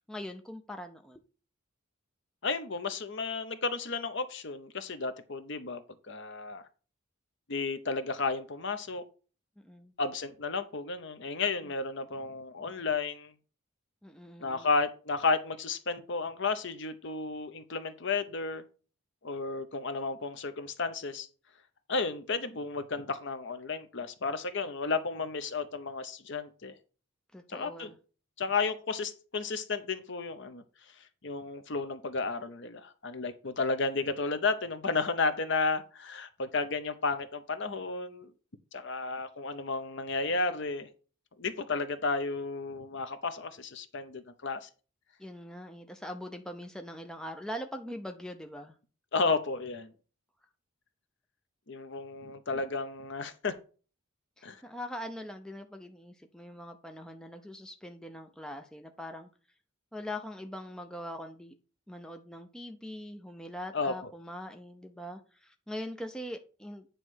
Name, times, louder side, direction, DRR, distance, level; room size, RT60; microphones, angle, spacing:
voice 1, 0.1-1.2 9.6-9.9 14.0-14.7 27.3-28.0 45.2-48.7 54.4-59.3 59.9-61.5 61.9-66.9, left 1 dB, 5° left, 0.5 m, -42 dB
voice 2, 2.4-5.8 6.1-6.6 7.5-9.0 10.0-13.3 14.4-18.6 19.2-21.3 21.9-26.7 27.5-27.9 28.4-30.6 31.2-38.3 38.7-40.9 41.4-44.7 49.1-49.9 51.7-53.5 54.4-54.6 63.7-63.9, left 4 dB, 55° left, 0.8 m, -32 dB
9.1 x 3.2 x 6.2 m
head